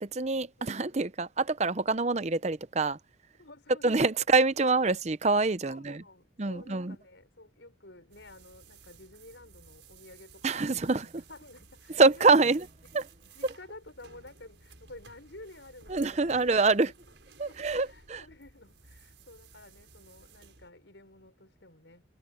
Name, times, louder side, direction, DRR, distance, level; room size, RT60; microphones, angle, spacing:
voice 1, 0.0-3.0 3.8-6.0 6.4-7.0 10.4-11.2 12.0-12.7 12.9-13.1 15.9-16.9 17.4-18.2, right 3 dB, 35° right, 0.7 m, -25 dB
voice 2, 3.4-4.1 5.7-12.4 12.8-16.5 17.5-22.0, left 2 dB, 70° left, 6.2 m, -52 dB
sound 1, 8.1-20.7, right 4 dB, 70° right, 5.5 m, -56 dB
head